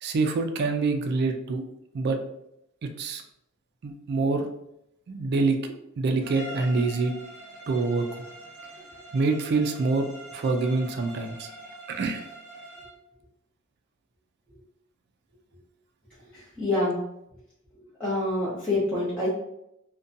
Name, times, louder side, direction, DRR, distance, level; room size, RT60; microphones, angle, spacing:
voice 1, 0.0-1.6 1.9-2.2 2.8-3.2 3.8-4.4 5.1-7.1 7.7-8.2 9.1-11.5 11.9-12.3, right 3 dB, 50° right, 6 dB, 0.3 m, -26 dB
Bowed string instrument, 6.2-13.0, equal, 50° left, 1.1 m, -44 dB
voice 2, 16.3-17.0 18.0-19.3, left 2 dB, 5° left, -11 dB, 0.7 m, -26 dB
2.6 x 2.2 x 2.6 m, 0.79 s
head